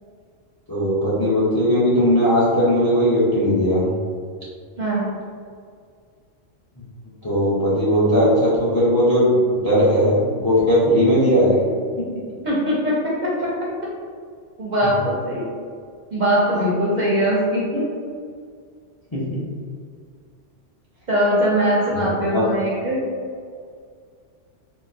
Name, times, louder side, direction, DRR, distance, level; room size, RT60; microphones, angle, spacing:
voice 1, 0.7-3.9 7.2-11.6 12.0-12.1 16.5-16.6 19.1-19.5 21.9-22.5, equal, 30° left, -8 dB, 0.4 m, -18 dB
voice 2, 4.8-5.1 12.4-13.5 14.6-15.5 16.1-17.8 21.1-23.0, equal, 50° right, -6 dB, 0.5 m, -21 dB
3.7 x 2.0 x 2.6 m, 2.1 s
omnidirectional pair, 1.3 m